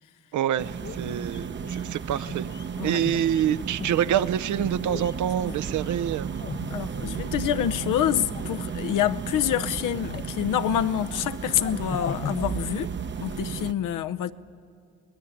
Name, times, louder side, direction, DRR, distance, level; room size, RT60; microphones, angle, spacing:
voice 1, 0.3-2.5 2.8-6.3, right 10 dB, 65° right, 13 dB, 0.7 m, -26 dB
sound 1, 0.6-13.7, right 6 dB, 35° right, 0.8 m, -34 dB
sound 2, 0.8-7.3 7.7-8.6 8.9-9.6 9.8-13.2 13.5-13.6, left 7 dB, 35° left, 0.7 m, -40 dB
voice 2, 1.1-1.5 2.8-3.0 6.7-12.9 13.2-14.3, left 11 dB, 70° left, 10 dB, 0.9 m, -27 dB
22.0 x 19.5 x 9.9 m, 2.2 s
supercardioid pair, 75°, 32 cm